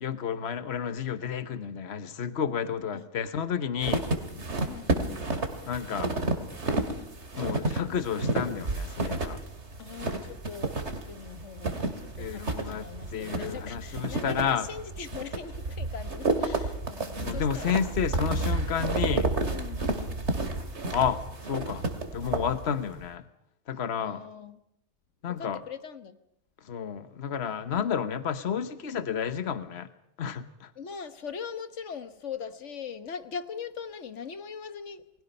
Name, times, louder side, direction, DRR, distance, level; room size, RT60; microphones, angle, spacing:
voice 1, 0.0-4.0 5.7-6.1 7.4-9.4 12.2-14.6 17.2-19.3 20.9-21.8 22.1-23.2 23.7-24.2 25.2-25.6 26.6-29.9 30.2-30.7, left 7 dB, 65° left, 11 dB, 1.3 m, -31 dB
sound 1, 3.8-23.0, right 2 dB, 75° right, 2.6 m, -31 dB
voice 2, 4.4-5.2 9.8-10.8 11.1-17.9 19.5-20.2 24.0-24.6 25.4-26.1 27.7-28.0 30.8-35.0, left 6 dB, 90° left, 11 dB, 1.5 m, -41 dB
29.5 x 21.0 x 5.5 m, 0.76 s
omnidirectional pair, 1.2 m